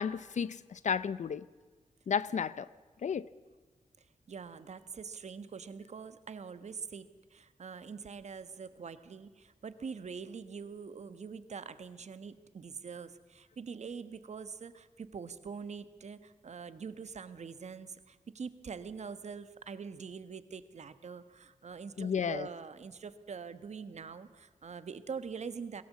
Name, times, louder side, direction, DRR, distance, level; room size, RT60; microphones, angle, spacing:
voice 1, 0.0-1.4 2.1-2.7 3.0-3.3 22.0-22.5, left 7 dB, 70° left, 0.6 m, -32 dB
voice 2, 4.0-25.8, right 5 dB, 60° right, 1.3 m, -44 dB
22.5 x 17.0 x 8.4 m
wide cardioid pair, 125°, 13 cm